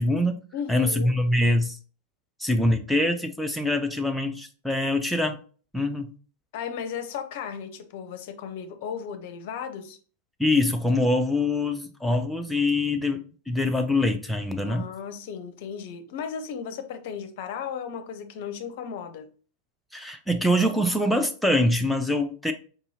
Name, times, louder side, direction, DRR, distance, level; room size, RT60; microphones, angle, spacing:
voice 1, 0.0-0.4 0.7-1.8 2.4-5.4 5.7-6.1 10.4-14.9 19.9-22.5, left 1 dB, ahead, 0.4 m, -24 dB
voice 2, 0.5-1.1 6.5-10.0 14.7-19.3, left 7 dB, 50° left, 0.5 m, -35 dB
4.7 x 2.7 x 2.8 m
figure-of-eight pair, 90°, 0 cm